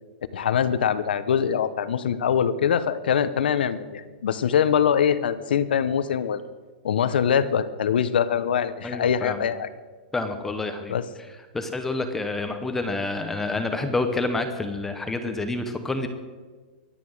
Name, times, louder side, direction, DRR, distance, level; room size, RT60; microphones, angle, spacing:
voice 1, 0.3-6.4 6.8-9.7 10.9-11.0, left 8 dB, 80° left, 13 dB, 1.0 m, -23 dB
voice 2, 8.8-9.4 10.1-11.0 11.5-16.1, left 2 dB, 5° left, 7 dB, 0.8 m, -28 dB
23.5 x 9.3 x 6.4 m, 1.4 s
supercardioid pair, 170°, 5 cm